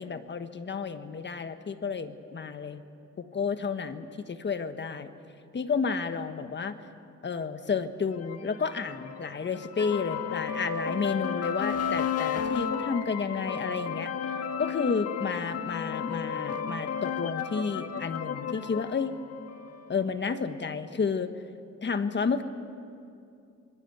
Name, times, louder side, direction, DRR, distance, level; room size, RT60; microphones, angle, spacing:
voice 1, 0.0-2.8 3.2-5.1 5.5-6.8 7.2-14.1 14.6-19.2 19.9-21.3 21.8-22.4, left 5 dB, 35° left, 9 dB, 1.5 m, -31 dB
sound 1, 8.2-20.0, left 7 dB, 55° left, 1.5 m, -33 dB
26.5 x 21.0 x 8.2 m, 2.5 s
cardioid pair, 90°, 30 cm